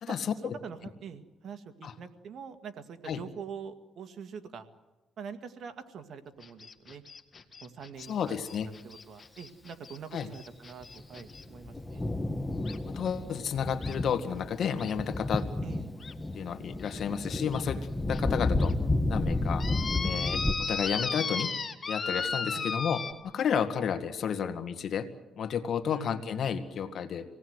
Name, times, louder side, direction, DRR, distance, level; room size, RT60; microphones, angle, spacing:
voice 1, 0.0-0.6 1.8-1.9 3.0-3.2 8.1-8.7 10.1-10.3 12.9-15.5 16.3-18.7 19.1-19.7 20.0-21.5 21.9-25.1 25.4-27.2, left 7 dB, 65° left, 9 dB, 1.8 m, -32 dB
voice 2, 0.6-4.7 5.2-7.0 7.6-8.4 8.8-12.1 15.6-15.9 18.2-18.6 20.7-20.8 22.5-22.7 25.9-26.3, right 7 dB, 65° right, 7 dB, 1.9 m, -44 dB
sound 1, 6.4-11.4 12.7-12.8 13.8-14.0 14.8-14.9 15.4-15.5 16.0-16.1 16.9-17.0 17.5-17.6 18.1-18.2 18.6-18.7 19.6-23.1, left 5 dB, 35° left, 1.9 m, -35 dB
Thunder, 10.8-20.5, left 2 dB, 15° left, 1.5 m, -32 dB
26.5 x 18.5 x 8.0 m, 1.1 s
cardioid pair, 90°, 0 cm